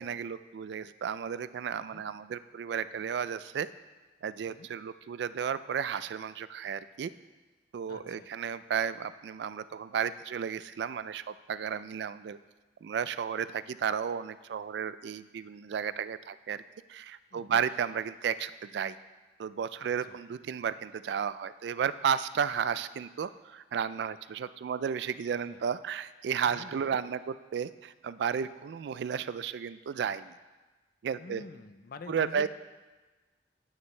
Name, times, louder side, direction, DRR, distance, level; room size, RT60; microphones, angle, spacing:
voice 1, 0.0-3.7 4.2-7.1 7.7-12.4 12.8-16.6 16.9-19.0 19.4-30.4 31.0-31.4 32.1-32.5, right 7 dB, 65° right, 15 dB, 0.3 m, -33 dB
voice 2, 7.9-8.3 17.3-17.6 19.8-20.2 25.3-25.6 26.4-27.0 31.2-32.5, left 3 dB, 55° left, 10 dB, 0.4 m, -48 dB
9.5 x 8.8 x 3.2 m, 1.2 s
head